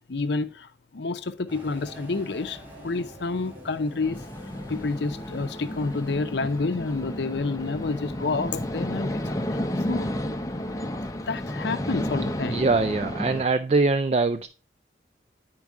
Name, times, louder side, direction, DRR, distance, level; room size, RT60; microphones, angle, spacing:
voice 1, 0.1-4.2 4.7-9.2 9.5-9.6 9.9-10.1 11.3-12.7, left 3 dB, 65° left, 0.6 m, -29 dB
sound 1, 1.5-10.3, equal, 10° right, 2.7 m, -48 dB
sound 2, 1.6-9.5, right 1 dB, 60° right, 3.6 m, -52 dB
sound 3, 4.0-13.5, left 1 dB, 20° left, 0.6 m, -32 dB
voice 2, 12.4-14.5, right 3 dB, 35° right, 0.3 m, -23 dB
9.7 x 4.6 x 3.5 m
head